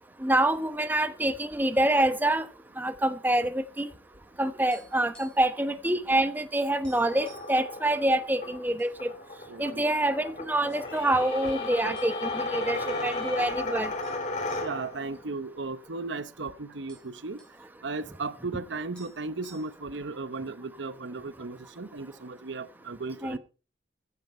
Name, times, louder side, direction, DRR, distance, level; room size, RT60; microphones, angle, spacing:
voice 1, 0.2-2.4 2.8-3.5 3.8-3.9 4.4-9.1 9.6-13.9 23.2-23.4, right 1 dB, 10° right, 0.9 m, -26 dB
sound 1, 4.7-5.6 5.8-6.0 6.4-6.5 6.8-7.6 8.3-8.9 9.3-9.4 10.1-10.8 11.5-11.6 12.0-12.5 12.8-12.9 14.0-16.1 16.4-16.5 16.7-17.6 18.6-18.7 18.9-20.0, right 3 dB, 5° left, 5.2 m, -55 dB
sound 2, 6.8-15.1, left 2 dB, 40° left, 2.9 m, -35 dB
voice 2, 9.5-9.9 14.6-17.4 17.8-23.4, right 3 dB, 80° right, 0.9 m, -36 dB
sound 3, 10.7-13.6, left 5 dB, 75° left, 4.0 m, -44 dB
15.0 x 10.5 x 4.3 m
head